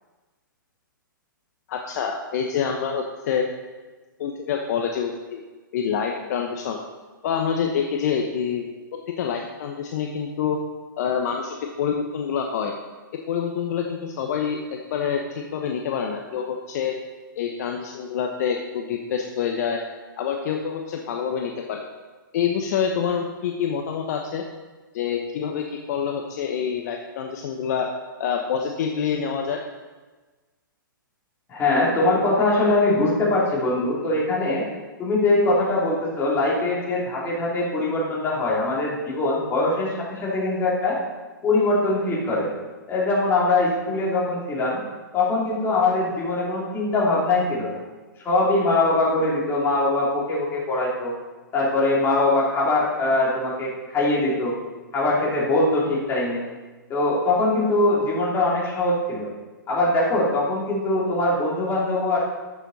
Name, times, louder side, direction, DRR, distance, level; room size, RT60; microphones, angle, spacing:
voice 1, 1.7-3.5 4.2-5.4 5.7-6.8 7.2-8.6 9.2-10.6 11.0-12.7 13.3-16.9 17.3-19.8 20.2-21.8 22.3-24.4 24.9-27.9 28.2-29.6, left 7 dB, 50° left, 3 dB, 0.9 m, -26 dB
voice 2, 31.5-34.6 35.0-41.0 41.4-42.5 42.9-44.8 45.1-47.8 48.2-51.1 51.5-54.5 54.9-56.4 56.9-59.3 59.7-62.2, left 2 dB, 20° left, -5 dB, 3.1 m, -22 dB
12.5 x 7.2 x 4.1 m, 1.3 s
hypercardioid pair, 135°, 11 cm